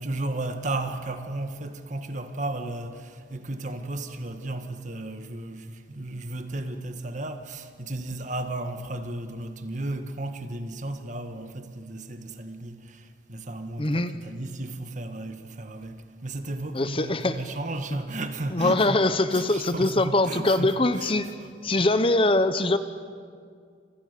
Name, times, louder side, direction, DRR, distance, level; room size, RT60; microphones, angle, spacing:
voice 1, 0.0-19.0 19.3-21.1 21.8-21.9, right 2 dB, 40° right, 1.7 m, -34 dB
voice 2, 13.8-14.2 16.7-17.4 18.5-21.3 21.6-22.8, left 2 dB, 30° left, 1.0 m, -23 dB
29.5 x 27.0 x 6.8 m
head